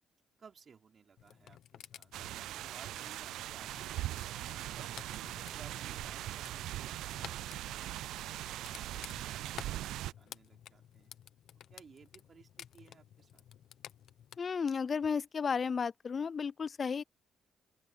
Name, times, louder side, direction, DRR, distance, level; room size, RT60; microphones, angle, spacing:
voice 1, 0.4-4.9 5.5-11.1 11.7-13.4, right 6 dB, 45° right, 3.4 m, -60 dB
sound 1, 1.2-14.4, left 10 dB, 75° left, 1.2 m, -54 dB
sound 2, 2.1-10.1, right 14 dB, 85° right, 0.5 m, -40 dB
voice 2, 14.4-17.0, left 6 dB, 40° left, 0.4 m, -33 dB
open air
cardioid pair, 90°, 0 cm